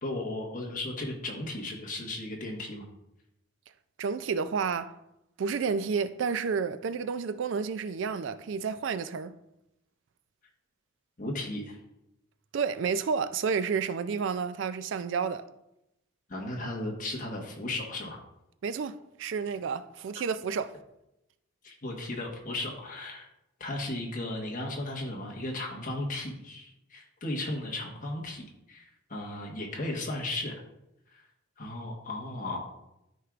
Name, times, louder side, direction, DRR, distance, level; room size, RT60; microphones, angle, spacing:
voice 1, 0.0-2.8 11.2-11.8 16.3-18.2 20.1-20.2 21.6-23.3 23.6-28.4 28.7-30.6 31.1-31.2 31.6-32.6, left 1 dB, 40° left, 1.3 m, -35 dB
voice 2, 4.0-4.9 5.4-9.3 12.5-15.4 18.6-20.7, right 5 dB, 65° right, 0.4 m, -30 dB
13.0 x 4.6 x 2.5 m
head